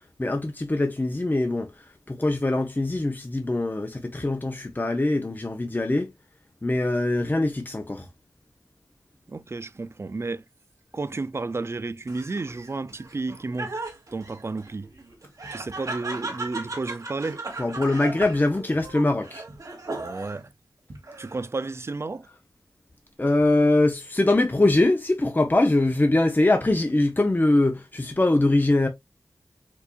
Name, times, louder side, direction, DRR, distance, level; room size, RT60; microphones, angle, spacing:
voice 1, 0.2-1.7 2.1-6.1 6.6-8.1 17.6-19.4 23.2-28.9, left 2 dB, 25° left, 0.8 m, -22 dB
voice 2, 9.3-10.4 10.9-13.8 14.1-14.9 15.5-17.4 20.0-20.5 21.2-22.3, right 3 dB, 40° right, 0.4 m, -32 dB
Laughter, 12.1-20.5 20.9-21.6, right 3 dB, 55° right, 1.6 m, -37 dB
4.5 x 2.7 x 2.3 m
cardioid pair, 40°, 7 cm